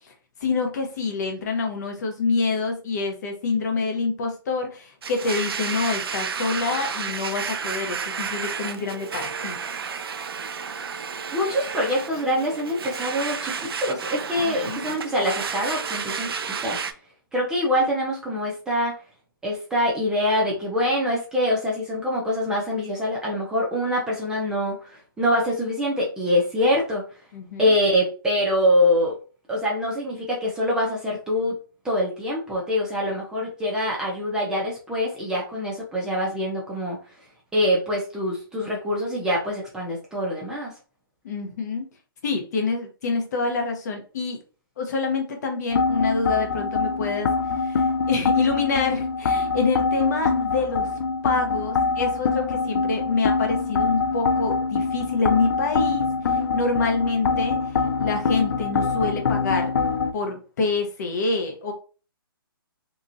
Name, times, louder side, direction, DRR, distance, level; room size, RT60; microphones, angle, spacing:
voice 1, 0.4-9.7 14.4-14.9 27.3-27.7 41.2-41.8 42.2-44.4 44.8-47.3 47.6-50.9 51.2-56.1 56.5-59.7 60.1-61.7, left 4 dB, 45° left, 4 dB, 0.8 m, -26 dB
Domestic sounds home sounds, 5.0-16.9, right 6 dB, 80° right, 0.4 m, -31 dB
voice 2, 11.3-16.8 17.3-18.9 19.4-27.0 27.6-29.1 29.5-31.5 31.8-37.0 37.5-40.7, left 1 dB, 5° right, -4 dB, 0.6 m, -24 dB
sound 1, 45.7-60.1, left 4 dB, 70° left, 0.4 m, -24 dB
2.9 x 2.5 x 2.5 m, 0.36 s
hypercardioid pair, 155°, 12 cm